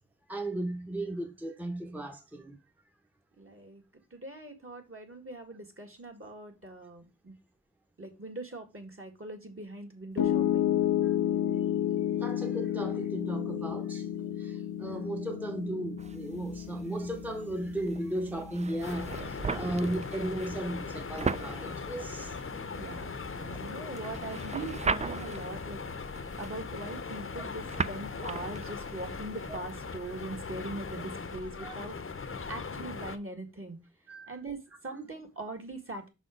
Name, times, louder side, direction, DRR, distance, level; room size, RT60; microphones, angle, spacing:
voice 1, 0.3-2.6 12.2-14.1 14.4-22.4 23.4-23.6 29.5-29.6 31.6-31.7 34.1-34.4 34.9-35.0, right 1 dB, 5° right, 0.8 m, -36 dB
voice 2, 3.4-3.8 4.1-7.4 8.0-10.7 22.7-25.8 26.4-33.8 34.3-36.1, right 2 dB, 45° right, 1.8 m, -42 dB
Piano, 10.2-22.3, left 11 dB, 80° left, 0.7 m, -32 dB
sound 1, 16.0-31.0, right 4 dB, 25° right, 0.3 m, -39 dB
sound 2, 18.8-33.2, left 5 dB, 45° left, 0.7 m, -39 dB
5.9 x 4.1 x 5.0 m
wide cardioid pair, 65°, 31 cm